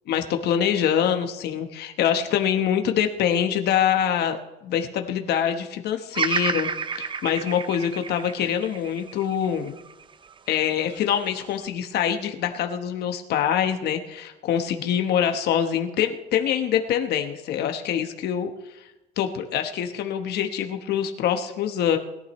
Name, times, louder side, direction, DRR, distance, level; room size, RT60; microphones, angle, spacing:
voice 1, 0.1-6.7 6.9-9.8 10.5-18.5 19.2-22.0, left 9 dB, 75° left, 6 dB, 1.1 m, -24 dB
Bird vocalization bird call bird song, 6.1-10.4 10.9-11.7, right 6 dB, 30° right, 0.6 m, -31 dB
21.0 x 12.0 x 3.1 m, 1.0 s
cardioid pair, 110°, 17 cm